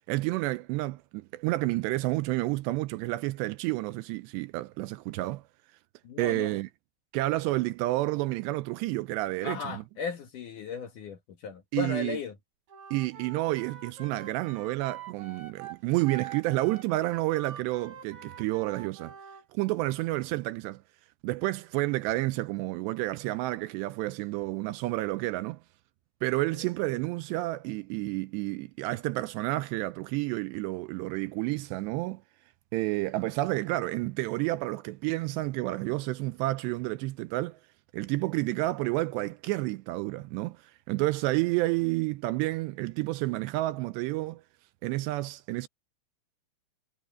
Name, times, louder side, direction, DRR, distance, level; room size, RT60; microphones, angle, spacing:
voice 1, 0.1-5.4 6.2-6.7 7.1-9.8 11.7-12.2 12.9-19.1 19.5-20.8 21.2-25.6 26.2-32.2 32.7-37.6 37.9-40.6 40.9-44.4 44.8-45.7, right 19 dB, 80° right, 2.6 m, -30 dB
voice 2, 6.0-6.6 9.4-12.3, left 5 dB, 60° left, 2.5 m, -36 dB
Wind instrument woodwind instrument, 12.7-19.4, right 8 dB, 55° right, 6.7 m, -45 dB
omnidirectional pair, 5.2 m